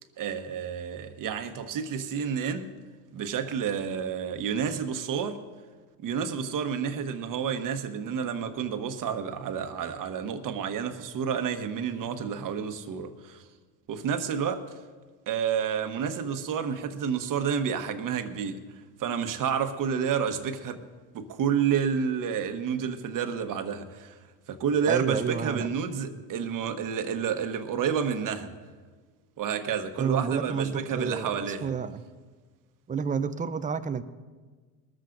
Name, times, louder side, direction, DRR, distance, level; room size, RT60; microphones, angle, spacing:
voice 1, 0.2-2.8 3.1-5.4 6.0-13.4 13.9-14.7 15.3-18.6 19.0-20.8 21.1-24.2 24.5-28.5 29.4-31.7, right 7 dB, 45° right, 1.2 m, -30 dB
voice 2, 24.9-25.7 30.0-32.0 32.9-34.0, right 6 dB, 20° right, 0.5 m, -29 dB
20.5 x 14.0 x 2.6 m
supercardioid pair, 95°, 45 cm